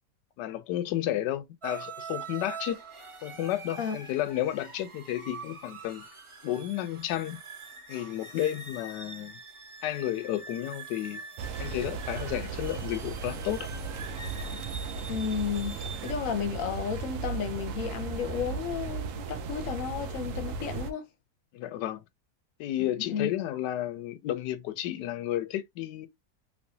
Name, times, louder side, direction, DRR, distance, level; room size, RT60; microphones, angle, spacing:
voice 1, 0.4-2.8 3.2-6.0 6.4-7.4 7.9-9.4 9.8-11.2 11.6-13.7 21.5-22.0 22.6-26.1, left 13 dB, 90° left, 1.2 m, -32 dB
sound 1, 1.6-16.1, right 4 dB, 40° right, 0.4 m, -44 dB
sound 2, 11.4-20.9, right 5 dB, 70° right, 0.7 m, -36 dB
voice 2, 15.1-15.8 16.0-21.1 22.8-23.3, left 7 dB, 60° left, 1.0 m, -33 dB
3.2 x 2.9 x 2.7 m
omnidirectional pair, 1.8 m